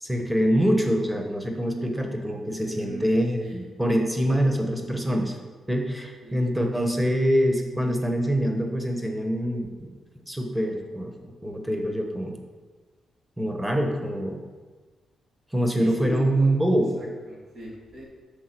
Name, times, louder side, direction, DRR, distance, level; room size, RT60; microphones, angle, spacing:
voice 1, 0.0-5.4 5.7-9.9 10.3-11.1 11.4-12.4 13.4-14.4 15.5-16.9, equal, 10° right, 3 dB, 1.1 m, -25 dB
voice 2, 2.5-3.7 6.2-6.5 15.7-16.5 17.0-18.0, equal, 70° right, -4 dB, 2.0 m, -39 dB
6.4 x 3.8 x 6.0 m, 1.4 s
cardioid pair, 70°, 0 cm